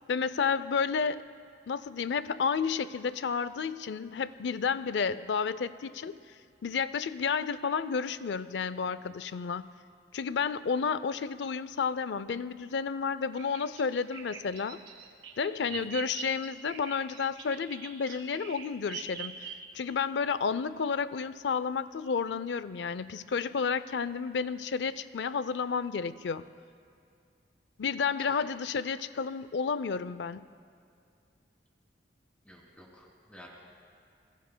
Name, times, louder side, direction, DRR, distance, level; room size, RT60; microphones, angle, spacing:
voice 1, 0.1-1.2 1.7-6.2 6.6-9.7 10.1-14.8 15.4-26.5 27.8-30.5, left 5 dB, 70° left, 15 dB, 0.4 m, -31 dB
Bird vocalization bird call bird song, 13.4-19.9, right 7 dB, 80° right, 1.8 m, -43 dB
voice 2, 32.5-33.5, equal, 10° left, -3 dB, 3.0 m, -52 dB
26.0 x 21.0 x 2.2 m, 2.4 s
head